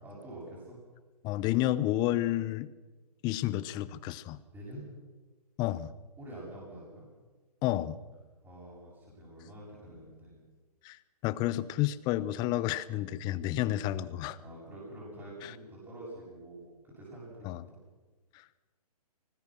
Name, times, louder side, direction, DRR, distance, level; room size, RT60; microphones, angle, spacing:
voice 1, 0.0-0.8 4.5-4.9 6.2-7.1 8.4-10.4 14.4-17.8, right 1 dB, 10° right, -7 dB, 7.6 m, -47 dB
voice 2, 1.2-2.7 3.2-4.4 5.6-5.9 7.6-8.0 10.8-14.4 15.4-15.5 17.4-17.6 18.3-18.4, left 14 dB, 20° left, 18 dB, 0.7 m, -30 dB
24.0 x 19.5 x 6.2 m, 1.2 s
figure-of-eight pair, 130°, 20 cm